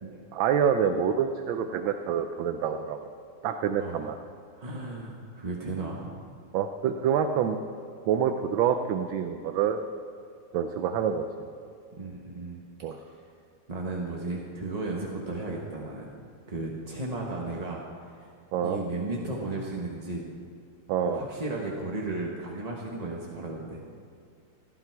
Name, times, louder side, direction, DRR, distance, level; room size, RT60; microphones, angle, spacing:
voice 1, 0.3-3.0 3.4-4.2 6.5-7.6 8.1-9.8 10.5-11.5 12.8-13.0 18.5-18.8 20.9-21.2, right 8 dB, 75° right, 6 dB, 1.4 m, -27 dB
voice 2, 3.8-4.1 4.6-6.2 11.9-12.6 12.9-13.1 13.7-16.1 16.5-18.3 18.6-20.3 21.1-23.8, right 2 dB, 25° right, -2 dB, 0.9 m, -35 dB
18.0 x 11.5 x 4.6 m, 2.3 s
omnidirectional pair, 2.3 m